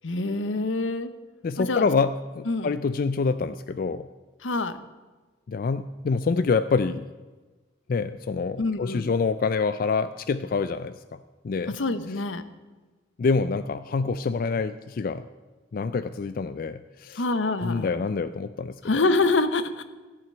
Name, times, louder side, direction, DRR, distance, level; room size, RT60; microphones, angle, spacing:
voice 1, 0.0-1.1 1.6-1.9 2.5-2.8 4.4-4.8 8.6-9.1 11.7-12.4 17.2-17.9 18.8-19.8, left 3 dB, 85° left, 12 dB, 0.9 m, -26 dB
voice 2, 1.4-4.1 5.5-7.1 7.9-10.9 11.4-11.8 13.2-15.3 15.7-17.2 17.6-19.0, left 4 dB, 50° left, 11 dB, 0.4 m, -26 dB
14.5 x 5.8 x 8.7 m, 1.3 s
head